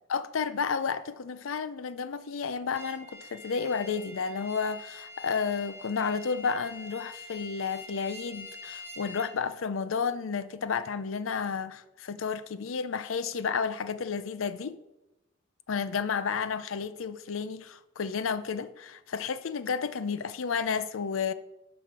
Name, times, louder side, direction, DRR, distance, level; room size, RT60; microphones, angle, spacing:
voice 1, 0.1-14.8 15.7-21.3, left 5 dB, 90° left, 0.5 m, -31 dB
sound 1, 2.7-9.3, left 2 dB, 10° right, 2.1 m, -45 dB
12.0 x 6.0 x 4.7 m
head